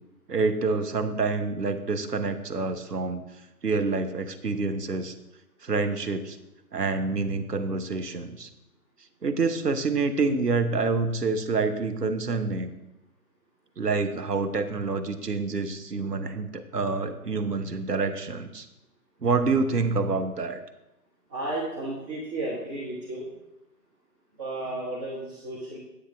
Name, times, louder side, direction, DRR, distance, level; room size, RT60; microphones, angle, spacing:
voice 1, 0.3-3.2 3.6-5.1 5.6-6.4 6.7-8.5 9.2-12.7 13.8-18.7 19.2-20.6, right 4 dB, 80° right, 7 dB, 1.1 m, -27 dB
voice 2, 21.3-23.3 24.4-25.8, right 2 dB, 20° right, -6 dB, 1.4 m, -33 dB
10.0 x 8.2 x 3.5 m, 0.94 s
figure-of-eight pair, 140°, 47 cm